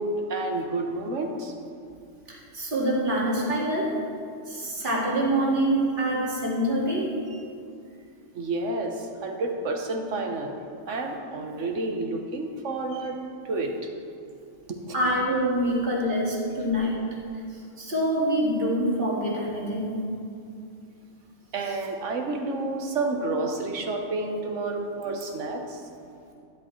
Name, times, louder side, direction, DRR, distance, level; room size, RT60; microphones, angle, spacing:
voice 1, 0.0-1.5 7.3-7.4 8.3-10.6 10.9-13.2 13.4-13.7 14.7-14.9 21.5-25.8, right 2 dB, 70° right, 3 dB, 1.3 m, -30 dB
voice 2, 2.3-3.9 4.5-7.1 14.9-17.0 17.5-20.0, right 1 dB, 40° right, -5 dB, 2.1 m, -25 dB
12.0 x 10.0 x 3.1 m, 2.4 s
omnidirectional pair, 1.3 m